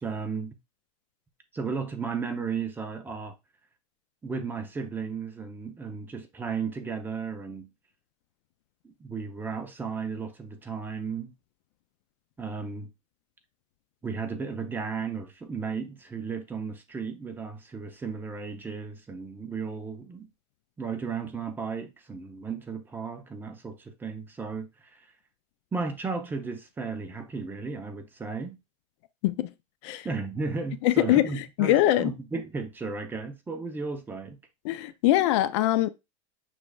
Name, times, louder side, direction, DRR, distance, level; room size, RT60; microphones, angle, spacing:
voice 1, 0.0-0.5 1.5-3.3 4.2-7.7 8.8-11.3 12.4-12.9 14.0-20.3 20.8-25.1 25.7-28.6 30.0-34.4, right 5 dB, 10° right, 0.6 m, -34 dB
voice 2, 30.8-32.1 34.6-35.9, left 14 dB, 60° left, 0.4 m, -23 dB
6.1 x 3.3 x 2.3 m
supercardioid pair, 145°, 17 cm